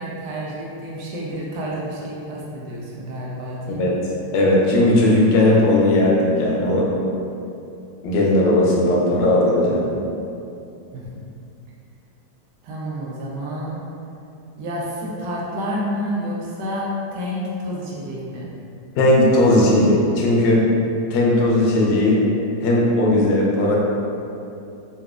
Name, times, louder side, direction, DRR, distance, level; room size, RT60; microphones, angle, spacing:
voice 1, 0.0-3.9 10.9-11.0 12.6-13.8 14.6-18.5, equal, 75° right, -5 dB, 1.1 m, -29 dB
voice 2, 4.3-6.9 8.0-9.9 19.0-20.6 21.1-22.2 22.6-23.8, left 1 dB, 85° left, -4 dB, 1.3 m, -17 dB
3.9 x 2.3 x 2.4 m, 2.7 s
omnidirectional pair, 1.9 m